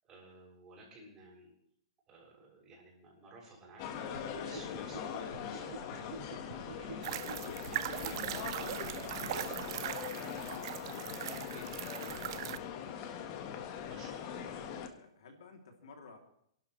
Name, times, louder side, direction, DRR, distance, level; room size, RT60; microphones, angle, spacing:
voice 1, 0.0-1.5 2.1-7.3 7.7-10.6 10.8-14.6, right 2 dB, 20° right, -3 dB, 7.0 m, -55 dB
sound 1, 3.8-14.9, left 8 dB, 40° left, 1.5 m, -41 dB
sound 2, 3.9-9.8, right 7 dB, 70° right, 4.1 m, -48 dB
sound 3, 7.0-12.6, right 14 dB, 50° right, 0.6 m, -40 dB
voice 2, 14.3-16.2, left 4 dB, 75° left, 2 dB, 3.0 m, -54 dB
28.5 x 12.0 x 3.3 m, 0.69 s
hypercardioid pair, 155°, 3 cm